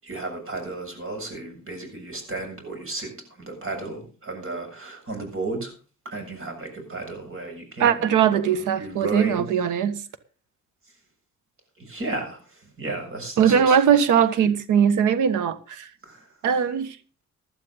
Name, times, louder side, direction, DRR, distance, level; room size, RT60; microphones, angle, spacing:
voice 1, 0.0-3.1 3.4-5.7 6.1-9.5 11.8-13.8 16.0-16.2, right 2 dB, 45° right, 7.3 m, -33 dB
voice 2, 7.8-10.0 13.4-15.9 16.4-17.0, right 8 dB, 85° right, 1.4 m, -20 dB
16.0 x 11.5 x 3.9 m
cardioid pair, 90°, 30 cm